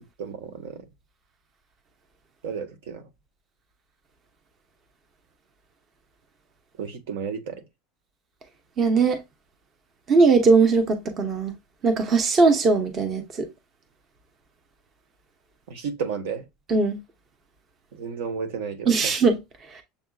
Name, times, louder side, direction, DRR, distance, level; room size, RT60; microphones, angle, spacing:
voice 1, 0.2-0.8 2.4-3.1 6.8-7.6 15.7-16.4 17.9-19.2, right 6 dB, 80° right, 1.4 m, -32 dB
voice 2, 8.8-9.2 10.1-11.5 11.8-13.5 16.7-17.0 18.9-19.4, right 4 dB, 25° right, 0.7 m, -19 dB
7.1 x 2.6 x 2.3 m
cardioid pair, 170°, 0 cm